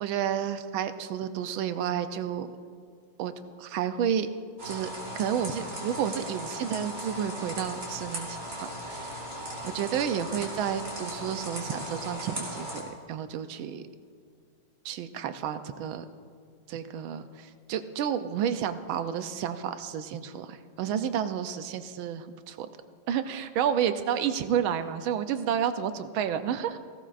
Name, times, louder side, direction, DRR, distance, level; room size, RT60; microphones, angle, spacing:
voice 1, 0.0-2.5 3.2-3.3 3.6-4.3 4.6-4.9 5.1-9.2 9.6-12.8 13.1-13.8 14.8-16.0 16.7-22.7 23.1-26.8, right 9 dB, 90° right, 9 dB, 1.5 m, -31 dB
sound 1, 4.6-12.8, equal, 35° right, 3.2 m, -37 dB
19.0 x 16.5 x 2.5 m, 2.1 s
omnidirectional pair, 2.2 m